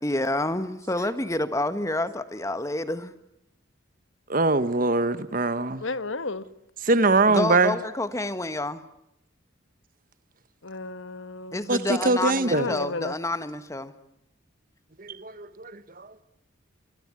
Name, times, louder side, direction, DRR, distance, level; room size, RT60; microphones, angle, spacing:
voice 1, 0.0-3.1 7.3-8.8 11.5-13.9, left 2 dB, 15° left, 1.4 m, -28 dB
voice 2, 4.3-5.8 6.8-7.8 11.7-11.8 12.0-12.7 15.0-16.1, right 3 dB, 45° right, 1.3 m, -22 dB
voice 3, 5.8-6.4 10.6-11.6 12.5-13.2, left 3 dB, 70° left, 1.3 m, -32 dB
24.5 x 21.0 x 9.8 m
head